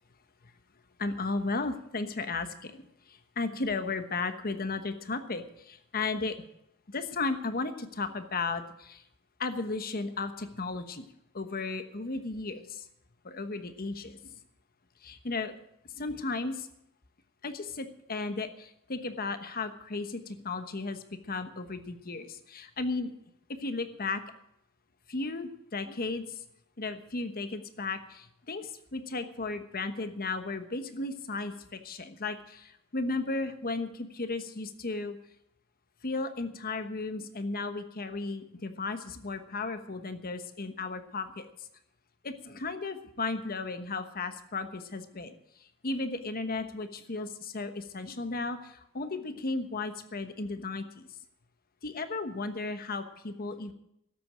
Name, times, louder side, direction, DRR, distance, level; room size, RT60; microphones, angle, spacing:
voice 1, 1.0-6.4 6.9-9.0 9.4-11.1 11.3-12.9 13.2-14.3 15.0-15.5 15.9-16.7 17.4-23.1 23.6-24.2 25.1-26.4 26.8-35.2 36.0-41.5 42.2-45.3 45.8-51.1 51.8-53.7, left 3 dB, 45° left, 9 dB, 1.2 m, -35 dB
13.0 x 8.2 x 8.9 m, 0.78 s
head